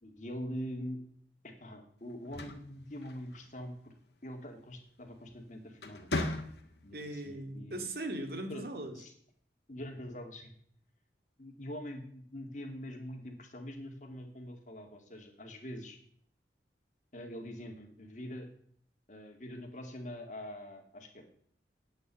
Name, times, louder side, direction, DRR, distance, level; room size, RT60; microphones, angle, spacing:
voice 1, 0.0-1.0 1.4-4.0 4.2-6.4 6.8-7.9 8.5-8.6 8.9-9.1 9.7-10.5 11.4-16.0 17.1-18.5 19.1-21.3, equal, 45° left, 4 dB, 2.3 m, -44 dB
sound 1, 2.1-3.6 5.1-5.4 5.8-6.9, left 2 dB, 70° left, 1.8 m, -37 dB
voice 2, 6.9-8.9, right 1 dB, 60° right, 5 dB, 2.4 m, -39 dB
9.4 x 8.9 x 9.9 m, 0.62 s
head